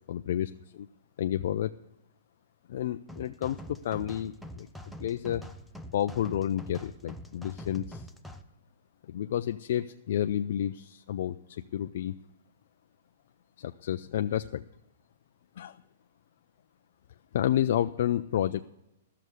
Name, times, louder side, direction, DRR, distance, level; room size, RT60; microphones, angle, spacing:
voice 1, 0.1-0.9 1.2-1.7 2.7-4.7 5.0-5.5 5.9-8.1 9.1-12.2 13.6-14.6 15.6-15.8 17.3-18.6, left 11 dB, 60° left, 8 dB, 0.3 m, -30 dB
sound 1, 3.1-8.4, equal, ahead, 0.5 m, -44 dB
13.0 x 6.7 x 6.2 m, 0.92 s
hypercardioid pair, 155°, 0 cm